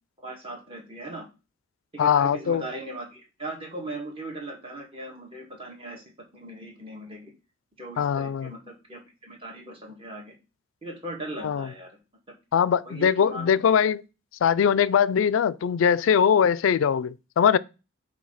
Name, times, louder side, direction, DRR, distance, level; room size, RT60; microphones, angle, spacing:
voice 1, 0.2-1.3 1.9-6.0 6.3-7.3 7.8-10.3 10.8-11.9 12.3-12.4 12.7-13.8, right 1 dB, 30° right, 1.6 m, -39 dB
voice 2, 2.0-2.6 8.0-8.5 11.4-11.7 12.5-14.0 14.4-17.6, left 7 dB, 70° left, 0.3 m, -21 dB
7.2 x 2.8 x 5.5 m
head